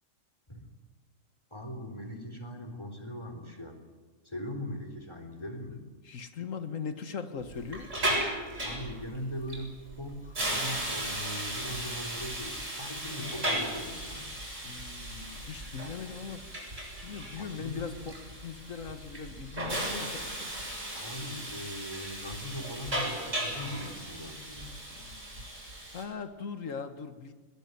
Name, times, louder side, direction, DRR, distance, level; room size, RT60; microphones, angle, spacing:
voice 1, 1.5-3.8 4.2-5.8 8.6-14.3 17.4-17.9 20.9-24.7, equal, 20° left, 3 dB, 3.7 m, -40 dB
voice 2, 6.0-7.9 14.6-16.4 17.0-20.3 25.0-27.3, left 6 dB, 80° left, 9 dB, 1.9 m, -40 dB
Hiss, 7.4-26.0, right 1 dB, 70° right, 7.3 m, -36 dB
21.5 x 19.0 x 9.5 m, 1.3 s
omnidirectional pair, 1.3 m